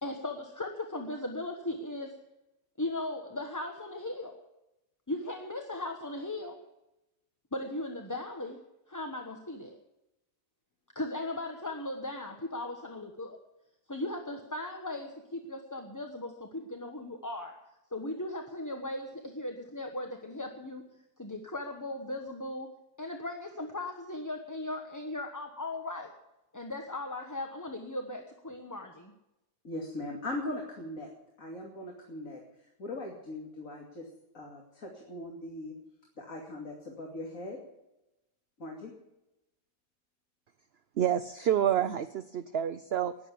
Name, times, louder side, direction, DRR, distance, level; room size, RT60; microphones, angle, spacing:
voice 1, 0.0-2.2 2.8-4.4 5.1-6.6 7.5-9.8 10.9-13.4 13.9-17.6 17.9-22.7 23.0-26.1 26.5-29.1, left 2 dB, 15° left, 3 dB, 1.1 m, -38 dB
voice 2, 29.6-31.1 31.4-32.4 32.8-34.1 34.3-35.7 36.2-37.6 38.6-38.9, left 1 dB, 55° left, 0 dB, 2.9 m, -39 dB
voice 3, 41.0-43.3, right 10 dB, 60° right, 12 dB, 0.6 m, -28 dB
19.5 x 7.7 x 8.4 m, 0.91 s
omnidirectional pair, 1.7 m